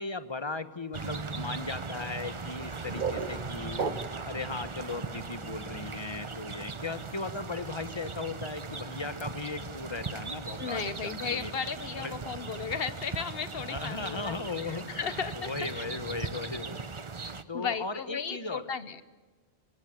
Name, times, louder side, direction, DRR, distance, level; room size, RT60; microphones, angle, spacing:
voice 1, 0.0-3.9 4.2-11.5 12.0-12.2 13.7-16.9 17.2-18.7, left 3 dB, 25° left, 12 dB, 1.1 m, -37 dB
sound 1, 0.9-17.4, right 4 dB, 30° right, 0.8 m, -39 dB
sound 2, 2.6-4.4, right 4 dB, 45° right, 1.5 m, -35 dB
voice 2, 10.6-14.4 14.7-15.8 17.5-19.0, left 6 dB, 55° left, 14 dB, 1.3 m, -35 dB
24.5 x 19.0 x 8.9 m, 1.3 s
omnidirectional pair, 1.2 m